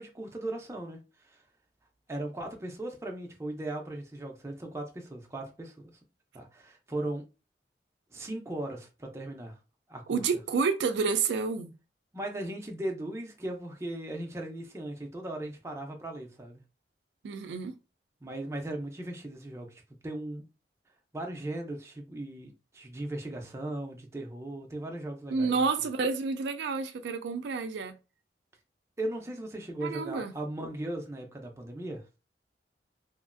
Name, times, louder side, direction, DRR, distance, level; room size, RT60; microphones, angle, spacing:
voice 1, 0.0-1.4 2.1-5.9 6.3-7.2 8.1-9.6 9.9-10.2 12.1-16.6 18.2-20.4 21.1-25.6 29.0-32.0, right 1 dB, 15° right, 0.5 m, -38 dB
voice 2, 10.1-11.7 17.2-17.7 25.3-27.9 29.8-30.3, right 5 dB, 80° right, 0.4 m, -29 dB
2.9 x 2.4 x 2.4 m
head